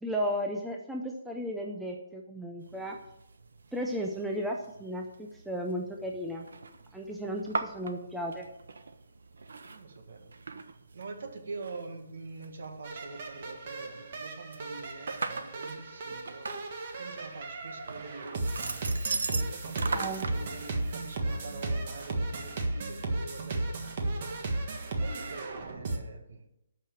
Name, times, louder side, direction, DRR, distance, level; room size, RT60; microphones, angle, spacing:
voice 1, 0.0-3.0 3.7-6.5 6.9-8.5 19.9-20.3, equal, ahead, 0 dB, 0.5 m, -34 dB
sound 1, 2.6-20.4, right 4 dB, 85° right, 1.2 m, -40 dB
voice 2, 9.7-10.4 10.9-26.4, right 3 dB, 55° right, 5 dB, 1.9 m, -45 dB
sound 2, 12.8-26.0, right 2 dB, 30° right, 1.5 m, -35 dB
12.0 x 5.8 x 7.5 m, 0.84 s
hypercardioid pair, 180°, 0 cm